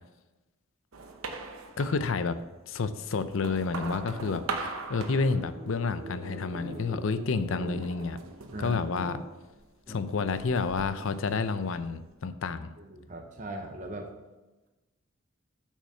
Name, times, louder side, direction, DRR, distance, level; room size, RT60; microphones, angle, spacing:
sound 1, 0.9-2.5 3.0-6.0 6.4-7.0 7.8-9.7 10.1-12.1, right 3 dB, 80° right, 0.9 m, -41 dB
voice 1, 1.8-2.4 2.7-8.2 8.6-9.2 9.9-12.7, left 4 dB, 70° left, 12 dB, 0.5 m, -30 dB
sound 2, 4.2-4.5 4.8-4.9 5.1-5.3 6.0-6.1 6.5-6.8 7.1-7.2 7.5-7.8 8.3-8.4 8.9-9.2 9.9-10.0, equal, 20° right, 2.6 m, -41 dB
sound 3, 5.2-9.0, right 1 dB, 55° right, 1.6 m, -45 dB
voice 2, 12.8-14.1, right 1 dB, 35° right, 2 dB, 0.8 m, -39 dB
6.6 x 6.5 x 5.5 m, 1.1 s
head